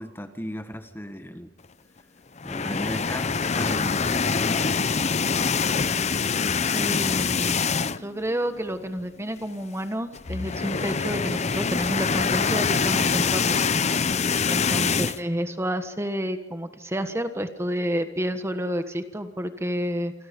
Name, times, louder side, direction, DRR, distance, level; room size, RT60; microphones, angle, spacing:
voice 1, 0.0-1.5 2.4-5.0, equal, 10° left, 8 dB, 1.4 m, -36 dB
sound 1, 2.4-8.2 8.6-8.7 9.0-9.1 10.1-15.2, left 5 dB, 35° left, 0.7 m, -24 dB
voice 2, 6.7-7.7 8.0-14.0 14.5-20.1, equal, 15° right, 8 dB, 1.4 m, -30 dB
28.0 x 25.0 x 5.3 m, 1.1 s
head